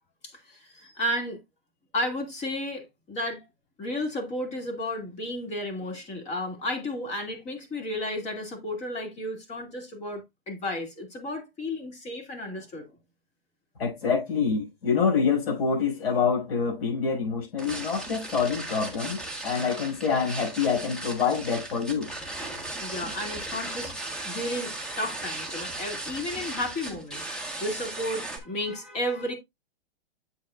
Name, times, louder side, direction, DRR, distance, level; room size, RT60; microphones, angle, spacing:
voice 1, 0.2-1.4 1.9-3.4 3.8-12.9 22.8-23.9 24.2-27.3 27.6-29.3, left 1 dB, 20° left, 2.3 m, -33 dB
voice 2, 13.8-22.1, left 6 dB, 75° left, 6.3 m, -26 dB
sound 1, 17.6-28.4, right 2 dB, ahead, 1.3 m, -37 dB
8.1 x 7.6 x 2.4 m
hypercardioid pair, 150°, 31 cm